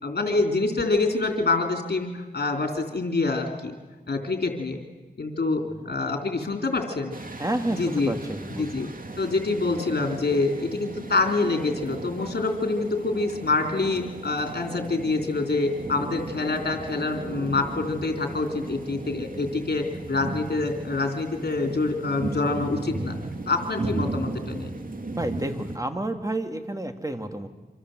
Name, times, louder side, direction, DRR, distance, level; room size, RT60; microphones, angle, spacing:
voice 1, 0.0-3.7 4.1-4.8 5.2-7.1 7.8-8.1 8.6-8.9 9.2-23.1 23.5-24.7, left 3 dB, 75° left, 4 dB, 3.6 m, -26 dB
sound 1, 7.1-25.8, right 2 dB, 55° right, 2.3 m, -36 dB
voice 2, 7.4-8.8 22.5-22.7 25.1-27.5, right 1 dB, 20° right, 6 dB, 2.6 m, -30 dB
27.0 x 26.0 x 8.0 m, 1.2 s
wide cardioid pair, 65°, 17 cm